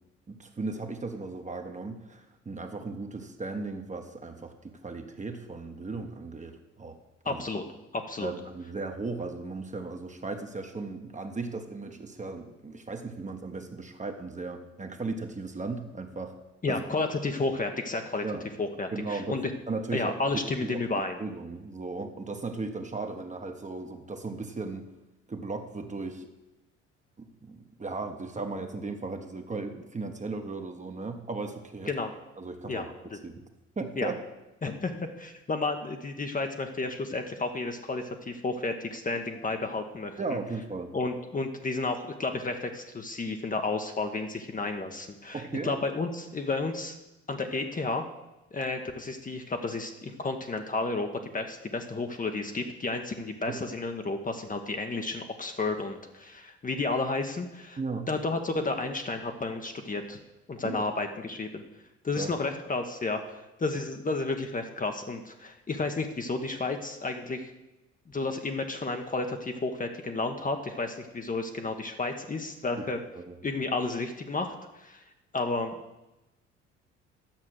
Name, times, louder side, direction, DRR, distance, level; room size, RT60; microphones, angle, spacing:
voice 1, 0.3-7.0 7.2-7.4 8.2-16.4 16.7-16.8 18.2-18.5 18.9-19.4 19.7-20.8 21.2-24.9 25.3-26.3 27.2-31.9 32.4-32.9 33.2-33.5 33.8-34.2 40.2-40.9 45.3-45.7 53.5-53.6 57.8-58.1 60.6-60.9 62.2-62.3 73.1-73.4, right 3 dB, 20° right, 5 dB, 1.3 m, -36 dB
voice 2, 7.2-7.6 7.9-8.3 16.6-18.2 18.6-19.5 19.9-21.2 31.9-32.1 32.7-32.8 33.1-33.2 34.0-34.1 34.6-40.2 40.9-47.0 47.3-48.0 48.5-51.1 51.3-57.8 58.1-60.2 60.5-61.6 62.0-67.5 68.1-73.0 73.4-75.0 75.3-75.8, left 3 dB, 25° left, 5 dB, 1.1 m, -32 dB
10.5 x 7.2 x 6.4 m, 1.0 s
figure-of-eight pair, 50°, 36 cm